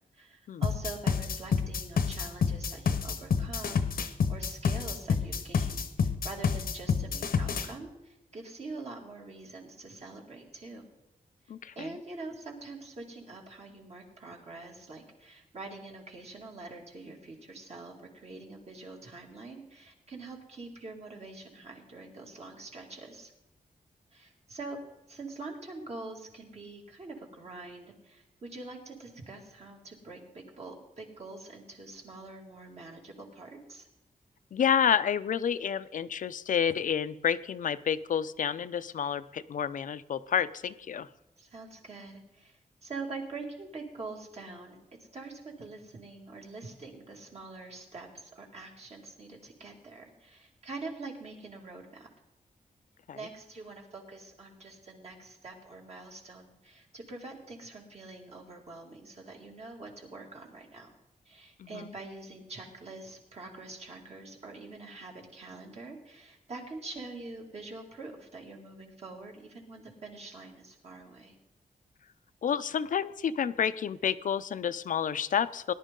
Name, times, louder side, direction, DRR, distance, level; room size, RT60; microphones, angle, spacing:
voice 1, 0.1-10.9 11.8-23.3 24.1-24.8 25.1-33.9 41.4-44.8 45.1-52.1 53.1-60.9 61.2-71.3, right 3 dB, 45° right, 0 dB, 2.5 m, -45 dB
sound 1, 0.6-7.7, left 6 dB, 85° left, 1.0 m, -28 dB
voice 2, 11.5-11.9 34.5-41.1 53.1-53.2 61.6-61.9 72.4-75.7, left 8 dB, 65° left, 14 dB, 0.5 m, -29 dB
19.0 x 11.0 x 3.8 m, 0.92 s
wide cardioid pair, 160°, 15 cm